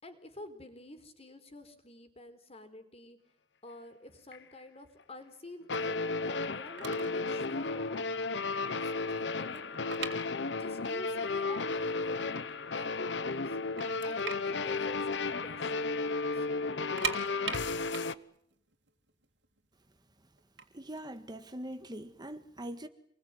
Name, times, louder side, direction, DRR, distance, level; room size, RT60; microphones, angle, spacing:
voice 1, 0.0-3.2 3.6-8.1 9.1-9.6 10.0-10.1 10.6-12.3 12.7-13.6 14.0-16.7, left 1 dB, 35° left, 4.1 m, -48 dB
sound 1, 4.3-4.4 5.7-18.1, left 3 dB, 80° left, 1.0 m, -33 dB
sound 2, 6.5-6.6 6.8-7.2 7.5-7.7 8.2-8.3 8.6-10.9 11.1-11.2 11.9-12.0 12.3-13.1 13.4-13.5 13.8-15.8 16.0-16.2 16.7-19.7 20.4-22.1, right 6 dB, 90° right, 3.2 m, -40 dB
voice 2, 20.7-22.9, right 1 dB, 25° right, 1.6 m, -42 dB
27.0 x 21.5 x 9.6 m
head